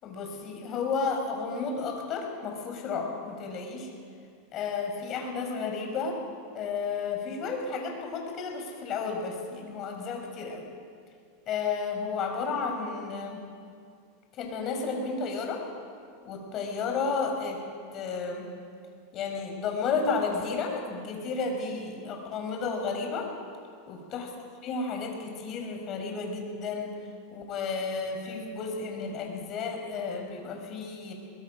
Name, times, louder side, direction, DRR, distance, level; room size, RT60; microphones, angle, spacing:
voice 1, 0.0-3.9 4.5-6.2 6.5-10.7 11.5-13.4 14.4-15.6 16.2-17.6 17.9-18.5 19.1-23.3 23.9-24.3 24.6-27.0 27.3-31.1, left 4 dB, 40° left, 2 dB, 5.4 m, -32 dB
23.0 x 21.0 x 6.4 m, 2.2 s
supercardioid pair, 135°, 0 cm